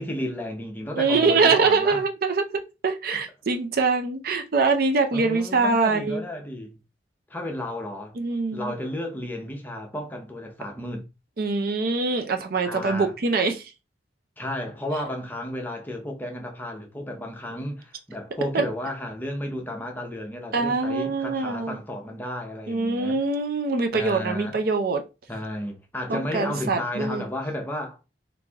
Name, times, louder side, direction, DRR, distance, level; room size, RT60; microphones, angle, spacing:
voice 1, 0.0-2.0 5.1-6.7 7.3-8.2 8.5-11.0 12.6-13.1 14.4-23.2 23.9-24.6 25.3-28.0, left 1 dB, 10° left, 0.7 m, -33 dB
voice 2, 1.0-2.4 2.8-6.2 8.2-8.7 11.4-13.6 18.5-18.7 20.5-21.8 22.7-25.0 26.1-27.2, right 4 dB, 55° right, 0.5 m, -23 dB
3.2 x 2.6 x 3.4 m
head